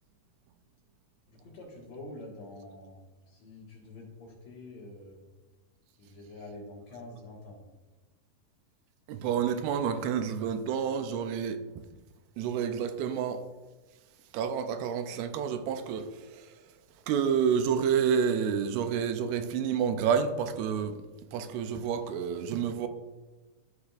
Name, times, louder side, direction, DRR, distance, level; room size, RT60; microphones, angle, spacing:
voice 1, 1.3-5.2 6.0-7.6, left 2 dB, 55° left, 2.5 m, -46 dB
voice 2, 9.1-11.6 12.4-13.5 14.3-16.5 17.1-21.0 21.3-22.9, right 7 dB, 85° right, 2.5 m, -29 dB
14.0 x 4.9 x 2.4 m
omnidirectional pair, 4.5 m